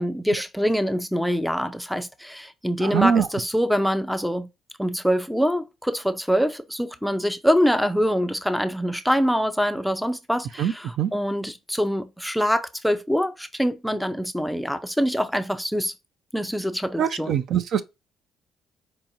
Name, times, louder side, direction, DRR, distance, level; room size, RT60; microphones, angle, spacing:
voice 1, 0.0-4.5 4.8-15.9 16.3-17.3, equal, ahead, 0.4 m, -24 dB
voice 2, 2.8-3.3 10.6-11.1 17.0-17.8, right 8 dB, 60° right, 0.4 m, -23 dB
4.6 x 2.5 x 2.9 m
cardioid pair, 110°, 0 cm